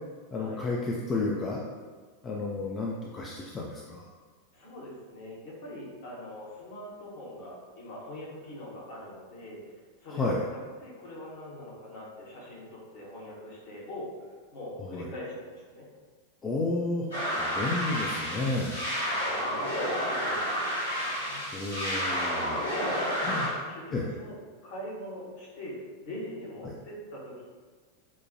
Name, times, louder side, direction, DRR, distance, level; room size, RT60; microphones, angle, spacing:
voice 1, 0.3-1.6 2.2-4.0 10.1-10.5 14.8-15.1 16.4-17.1 17.4-19.0 21.5-22.6 23.2-23.5 23.9-24.1 26.6-26.7, left 2 dB, 20° left, -2 dB, 0.3 m, -31 dB
voice 2, 4.5-10.3 10.8-15.9 19.0-21.4 22.7-24.3 24.6-25.7 26.0-27.5, left 1 dB, 50° left, -6 dB, 1.1 m, -42 dB
sound 1, 17.1-23.5, equal, 85° left, 1.2 m, -30 dB
4.4 x 2.1 x 2.7 m, 1.5 s
figure-of-eight pair, 90°, 0 cm